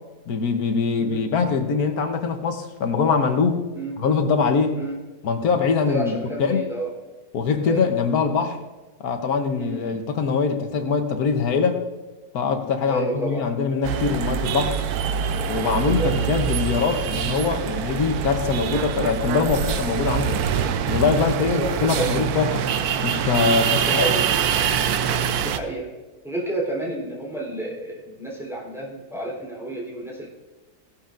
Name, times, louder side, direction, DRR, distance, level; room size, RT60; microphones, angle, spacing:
voice 1, 0.3-3.6 4.0-4.8 5.2-6.6 7.3-8.6 9.0-11.8 12.3-14.8 15.5-20.4 20.9-22.6 23.0-24.1, left 5 dB, 75° left, 6 dB, 1.5 m, -23 dB
voice 2, 5.9-6.9 7.6-7.8 9.6-10.0 12.9-13.5 16.0-16.1 21.4-22.2 23.8-24.3 25.4-25.9 26.2-30.3, right 2 dB, ahead, -5 dB, 3.5 m, -30 dB
sound 1, 13.8-25.6, right 8 dB, 80° right, 1.1 m, -24 dB
16.5 x 11.5 x 2.6 m, 1.2 s
omnidirectional pair, 1.6 m